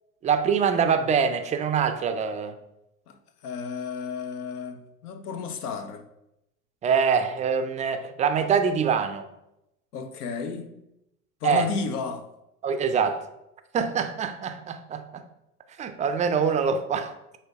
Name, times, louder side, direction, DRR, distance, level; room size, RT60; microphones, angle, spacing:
voice 1, 0.2-2.6 6.8-9.2 11.4-11.7 12.6-13.2 13.7-15.2 15.8-17.1, right 6 dB, 15° right, 0.4 m, -24 dB
voice 2, 3.1-6.0 9.9-10.8 11.4-12.3, left 5 dB, 75° left, 0.8 m, -33 dB
7.5 x 2.7 x 4.7 m
hypercardioid pair, 80°, 46 cm